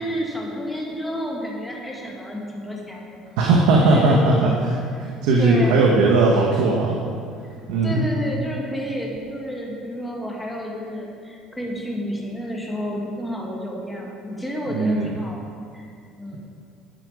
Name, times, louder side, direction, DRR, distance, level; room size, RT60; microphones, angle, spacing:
voice 1, 0.0-3.5 3.7-4.6 5.4-6.0 7.8-15.4 15.7-15.9 16.2-16.4, equal, 5° left, -2 dB, 1.9 m, -30 dB
voice 2, 3.4-7.0 7.7-8.0 14.7-15.1, right 3 dB, 90° right, -1 dB, 1.4 m, -18 dB
11.5 x 10.5 x 5.0 m, 2.3 s
cardioid pair, 165°, 0 cm